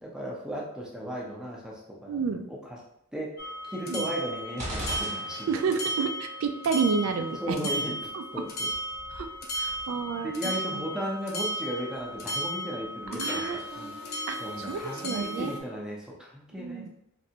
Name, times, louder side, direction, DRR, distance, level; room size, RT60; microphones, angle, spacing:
voice 1, 0.0-2.2 2.5-2.8 3.1-5.5 7.4-8.0 8.3-8.7 10.2-16.9, equal, 5° right, -3 dB, 0.6 m, -36 dB
voice 2, 2.1-2.5 3.9-4.1 5.5-7.7 8.1-8.4 9.1-9.3 9.6-10.9 13.1-13.6 14.3-15.5 16.6-16.9, right 5 dB, 85° right, 7 dB, 0.3 m, -30 dB
sound 1, 3.4-15.6, equal, 50° left, 0.6 m, -35 dB
sound 2, 4.6-5.9, equal, 35° right, 0.8 m, -36 dB
3.2 x 2.5 x 2.8 m, 0.77 s
head